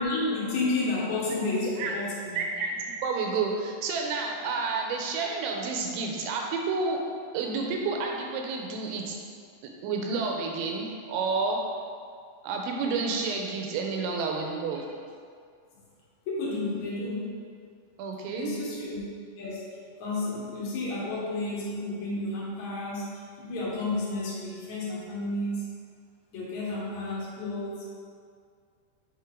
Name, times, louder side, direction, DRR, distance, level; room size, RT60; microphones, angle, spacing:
voice 1, 0.0-2.4 16.3-17.3 18.3-19.0 19.4-19.6 20.0-23.1 23.4-25.7 26.3-27.9, left 2 dB, 60° left, -7 dB, 2.0 m, -31 dB
voice 2, 2.4-7.0 7.3-9.2 9.8-11.6 12.4-14.9 18.0-18.5, right 4 dB, 80° right, 1 dB, 2.9 m, -30 dB
8.7 x 5.3 x 3.7 m, 2.2 s
omnidirectional pair, 5.7 m